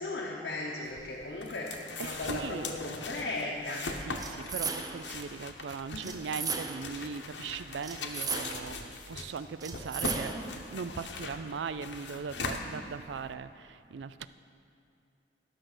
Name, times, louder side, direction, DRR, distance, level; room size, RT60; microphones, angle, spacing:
voice 1, 0.0-1.7 2.0-3.9 5.9-6.0, left 2 dB, 65° left, -3 dB, 1.0 m, -36 dB
sound 1, 0.9-13.3, left 3 dB, 85° left, 0.9 m, -40 dB
voice 2, 2.0-2.8 3.7-10.3 10.7-14.3, right 5 dB, 80° right, 14 dB, 0.4 m, -39 dB
sound 2, 4.2-5.2 6.0-7.0 7.8-8.8 9.6-10.6, right 4 dB, 20° right, 0.6 m, -36 dB
12.0 x 6.5 x 6.1 m, 2.6 s
head